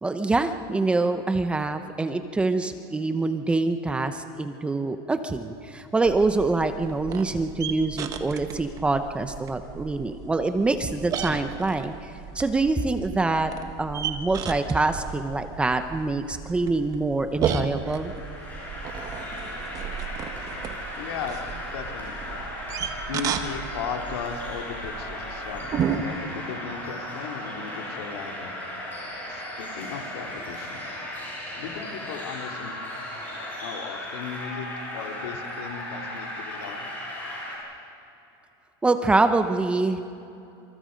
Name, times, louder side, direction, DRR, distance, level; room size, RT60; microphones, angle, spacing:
voice 1, 0.0-13.5 13.8-18.1 38.8-40.0, right 3 dB, 10° right, 8 dB, 0.8 m, -25 dB
sound 1, 6.0-26.0, right 8 dB, 25° right, 1.3 m, -34 dB
sound 2, 17.7-37.6, left 1 dB, 15° left, 7.1 m, -36 dB
voice 2, 21.0-21.4 21.7-22.4 23.1-28.5 29.3-30.8 31.6-32.8 33.6-34.7 34.9-36.9, left 6 dB, 90° left, 4 dB, 3.0 m, -36 dB
27.0 x 27.0 x 5.2 m, 2.8 s
supercardioid pair, 165°, 13 cm